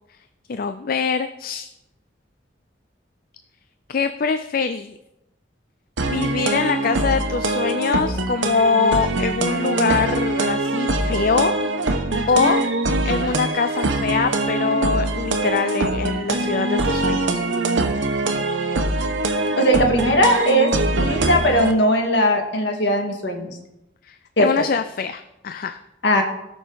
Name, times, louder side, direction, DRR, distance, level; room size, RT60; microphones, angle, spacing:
voice 1, 0.5-1.7 3.9-5.0 6.0-11.5 11.8-12.6 13.0-17.5 24.0-25.8, left 5 dB, 50° left, 10 dB, 0.4 m, -23 dB
sound 1, 6.0-21.7, right 2 dB, 90° right, 1.1 m, -23 dB
voice 2, 19.6-20.7 21.0-23.6 24.4-24.5 26.0-26.2, equal, 65° left, 2 dB, 2.0 m, -19 dB
18.0 x 6.1 x 4.0 m, 0.91 s
head